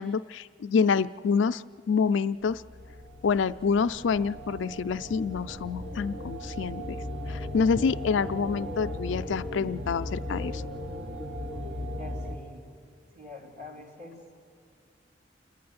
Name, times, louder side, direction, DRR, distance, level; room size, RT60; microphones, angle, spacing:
voice 1, 0.0-2.6 3.2-7.0 7.3-10.6, left 5 dB, 75° left, 13 dB, 0.4 m, -27 dB
sound 1, 2.5-12.4, left 1 dB, 75° right, 1.9 m, -37 dB
voice 2, 12.0-12.7 13.1-14.1, left 3 dB, 45° right, -1 dB, 3.0 m, -45 dB
29.5 x 11.0 x 9.5 m, 2.5 s
head